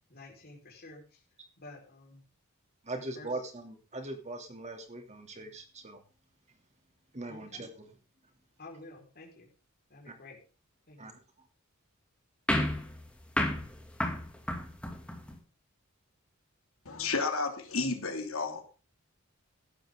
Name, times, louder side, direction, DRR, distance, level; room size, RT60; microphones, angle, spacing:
voice 1, 0.1-1.2 1.6-2.2 3.1-3.3 7.3-7.7 8.6-9.5 9.9-10.4 10.9-11.0, left 2 dB, 45° left, -1 dB, 4.9 m, -50 dB
voice 2, 2.8-6.0 7.1-7.9 10.1-10.2 11.0-11.1, right 2 dB, 30° right, 5 dB, 2.9 m, -40 dB
sound 1, 12.5-15.4, left 1 dB, 5° left, 2.5 m, -32 dB
voice 3, 16.8-18.6, left 3 dB, 65° left, 5 dB, 2.7 m, -32 dB
15.5 x 11.5 x 3.8 m, 0.35 s
head